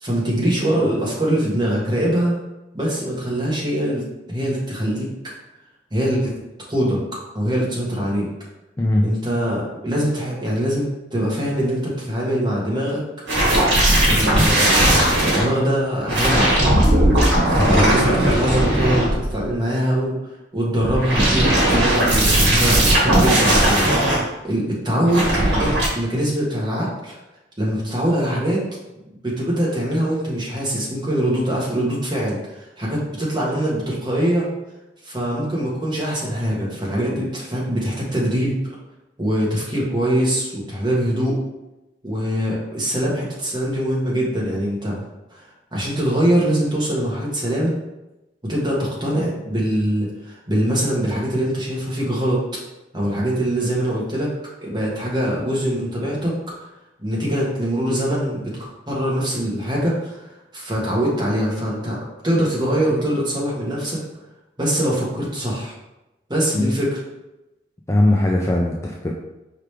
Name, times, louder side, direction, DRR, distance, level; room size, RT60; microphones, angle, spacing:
voice 1, 0.0-2.4 2.7-5.1 5.9-6.3 6.7-7.0 7.3-8.3 9.0-13.0 14.1-14.7 15.3-16.8 17.5-20.1 20.5-27.2 27.6-28.6 29.2-34.5 35.0-38.5 39.2-41.4 42.0-45.0 45.3-45.4 45.7-47.8 48.4-52.4 52.9-54.3 54.6-56.7 57.0-58.5 58.9-62.0 62.2-64.0 64.6-65.7 66.3-67.0, right 1 dB, 25° right, -5 dB, 1.2 m, -23 dB
sound 1, 13.3-15.5 16.1-19.5 20.8-24.2 25.1-25.9, right 1 dB, 70° right, 1.5 m, -17 dB
voice 2, 17.5-17.9 66.5-66.7 67.9-69.1, left 1 dB, 15° left, -1 dB, 0.3 m, -19 dB
4.8 x 3.3 x 3.3 m, 0.97 s
head